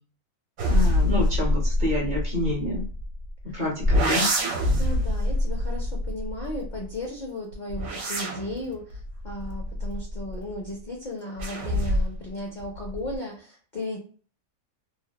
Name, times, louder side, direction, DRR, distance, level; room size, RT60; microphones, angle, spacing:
voice 1, 0.6-2.8 3.5-4.3, left 2 dB, 45° right, -2 dB, 0.6 m, -28 dB
sound 1, 0.6-3.3 3.8-6.9 7.5-10.5 11.4-12.3 12.6-13.2, left 1 dB, 65° right, 1.1 m, -25 dB
voice 2, 4.8-14.0, left 1 dB, 80° left, 0 dB, 0.4 m, -35 dB
2.8 x 2.0 x 2.2 m, 0.40 s
omnidirectional pair, 1.5 m